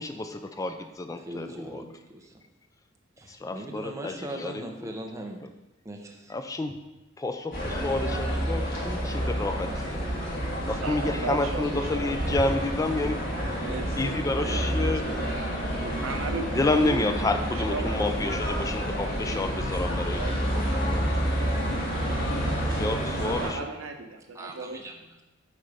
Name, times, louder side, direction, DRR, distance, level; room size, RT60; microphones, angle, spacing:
voice 1, 0.0-1.8 3.3-4.9 6.3-6.8 7.2-10.1 10.7-13.2 14.0-15.0 16.5-20.2 20.6-21.3 22.6-23.7, left 2 dB, 15° left, 7 dB, 0.3 m, -30 dB
voice 2, 1.2-2.4 3.2-5.4 5.8-6.3 24.3-25.2, right 1 dB, 15° right, 2 dB, 0.7 m, -40 dB
sound 1, 7.5-23.5, equal, 50° left, 1.7 m, -29 dB
voice 3, 10.8-12.4 13.6-17.0 17.5-18.1 18.5-18.8 20.2-20.6 23.2-24.8, right 3 dB, 90° right, 5 dB, 0.7 m, -37 dB
8.5 x 3.2 x 4.9 m, 1.0 s
head